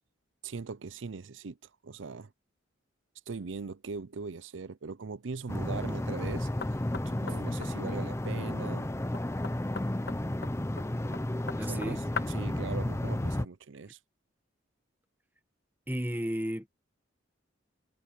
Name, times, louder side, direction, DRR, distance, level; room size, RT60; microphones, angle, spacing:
voice 1, 0.4-1.6 1.8-2.3 3.3-6.5 7.1-8.9 11.6-12.0 12.3-14.0, right 4 dB, 85° right, 0.6 m, -40 dB
sound 1, 5.5-13.5, left 1 dB, 15° left, 0.6 m, -32 dB
Knock, 6.6-12.5, left 5 dB, 55° left, 1.1 m, -42 dB
voice 2, 11.6-12.0 15.9-16.7, equal, 10° right, 1.8 m, -33 dB
head